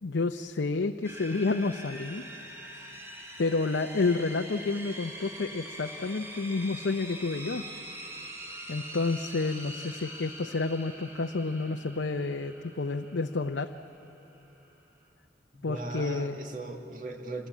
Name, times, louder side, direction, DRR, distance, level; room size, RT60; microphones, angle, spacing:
voice 1, 0.0-2.2 3.4-7.6 8.7-13.7 15.6-16.4, left 3 dB, 85° left, 5 dB, 0.7 m, -30 dB
sound 1, 1.0-15.1, equal, 15° right, 3.0 m, -44 dB
voice 2, 15.5-17.5, right 2 dB, 45° right, 3 dB, 2.0 m, -38 dB
27.5 x 21.5 x 8.4 m, 2.9 s
head